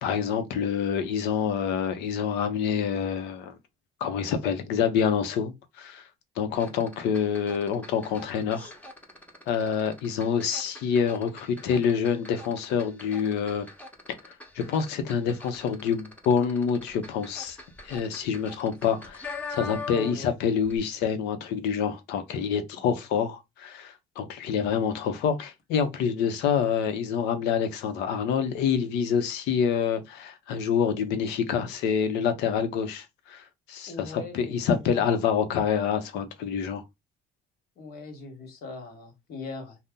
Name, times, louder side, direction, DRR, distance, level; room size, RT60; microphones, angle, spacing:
voice 1, 0.0-3.6 4.0-6.0 6.4-8.7 9.5-13.7 14.3-17.6 17.8-36.8, left 7 dB, 90° left, 0.7 m, -27 dB
sound 1, 6.6-20.3 20.6-20.8, left 3 dB, 10° left, 0.8 m, -43 dB
voice 2, 19.9-20.3 33.9-35.0 37.8-39.8, left 3 dB, 70° left, 1.2 m, -40 dB
2.7 x 2.1 x 3.5 m
cardioid pair, 110°, 17 cm